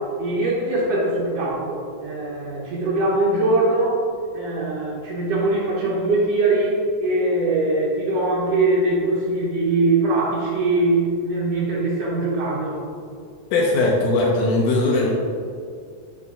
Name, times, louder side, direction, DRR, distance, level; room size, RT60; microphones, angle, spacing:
voice 1, 0.0-4.0 4.3-12.8, right 2 dB, 90° right, -5 dB, 1.4 m, -22 dB
voice 2, 13.5-15.1, left 2 dB, 80° left, -3 dB, 1.9 m, -19 dB
7.9 x 4.3 x 3.6 m, 2.3 s
omnidirectional pair, 4.2 m